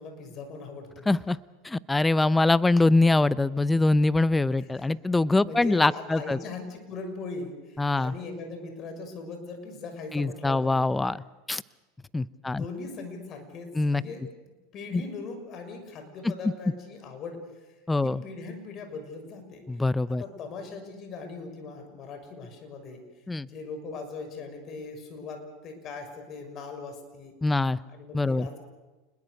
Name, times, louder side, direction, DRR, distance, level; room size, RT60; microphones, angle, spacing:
voice 1, 0.0-1.1 4.6-4.9 5.3-10.8 12.4-17.7 18.0-19.7 20.1-23.0 23.5-27.3 27.9-28.6, left 4 dB, 45° left, 6 dB, 6.4 m, -40 dB
voice 2, 1.1-1.4 1.6-6.4 7.8-8.1 10.1-11.2 11.5-11.6 12.1-12.6 13.8-14.0 17.9-18.2 19.7-20.2 23.3-23.5 27.4-27.8 28.1-28.5, left 2 dB, 10° left, 18 dB, 0.7 m, -23 dB
28.5 x 21.0 x 6.7 m, 1.2 s
hypercardioid pair, 95°, 0 cm